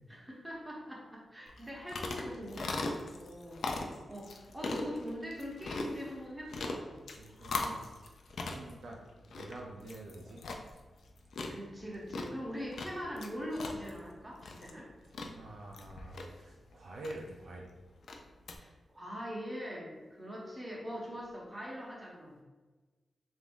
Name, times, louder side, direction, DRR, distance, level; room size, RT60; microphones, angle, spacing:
voice 1, 0.1-3.6 4.1-7.0 11.5-14.9 18.6-22.4, equal, 10° right, -3 dB, 0.8 m, -42 dB
sound 1, 1.5-18.6, left 3 dB, 65° left, 0.4 m, -41 dB
voice 2, 7.2-7.9 8.3-9.0 9.3-10.4 15.0-17.7, right 2 dB, 55° right, 0 dB, 0.5 m, -47 dB
3.4 x 2.6 x 3.5 m, 1.3 s
wide cardioid pair, 155°, 0 cm